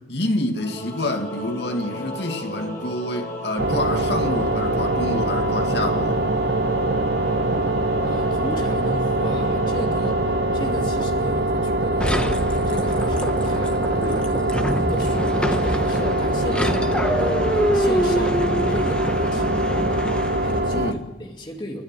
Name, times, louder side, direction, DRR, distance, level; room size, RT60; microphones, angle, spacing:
voice 1, 0.1-6.2 13.4-13.6 20.7-21.0, left 1 dB, 70° left, 2.2 m, -27 dB
Singing / Musical instrument, 0.5-11.8, left 1 dB, 45° left, 4.9 m, -35 dB
sound 1, 3.6-20.9, right 1 dB, 65° right, 1.0 m, -23 dB
voice 2, 8.0-10.2 10.5-20.1 20.4-21.8, equal, 25° left, 2.5 m, -35 dB
sound 2, 12.0-20.7, equal, 5° left, 0.9 m, -26 dB
30.0 x 10.5 x 9.2 m
head